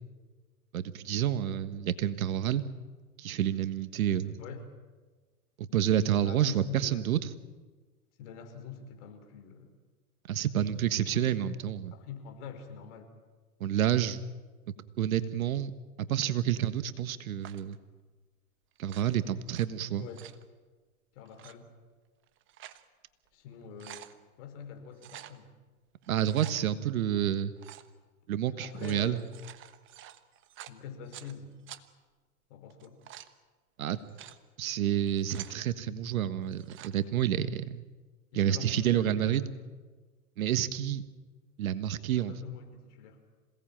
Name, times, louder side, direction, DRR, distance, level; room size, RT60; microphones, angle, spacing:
voice 1, 0.7-2.6 3.2-4.4 5.6-7.3 10.3-11.9 13.6-14.2 15.0-15.7 16.1-17.8 18.8-20.1 26.1-27.5 28.3-29.2 33.8-34.0 34.6-37.8 38.3-39.5 40.4-41.0 41.6-42.3, right 10 dB, 70° right, 13 dB, 1.5 m, -29 dB
voice 2, 6.2-7.0 8.2-9.8 11.1-11.5 11.9-13.1 20.0-20.2 21.1-21.7 23.3-24.1 24.4-25.5 28.6-29.3 30.7-31.5 32.5-33.0 38.3-39.5 42.1-43.2, left 7 dB, 50° left, 5 dB, 5.1 m, -44 dB
sound 1, 17.4-17.8 18.8-19.7 20.0-20.4 21.3-21.5 22.2-22.8 23.3-23.4 23.6-24.1 25.0-25.4 26.0-26.6 27.6-27.9 28.6-31.3 31.7-31.8 32.7-33.3 33.9-34.4 35.0-35.6 36.5-36.9, right 13 dB, 25° right, 1.2 m, -48 dB
27.0 x 18.0 x 9.0 m, 1.3 s
hypercardioid pair, 120°, 44 cm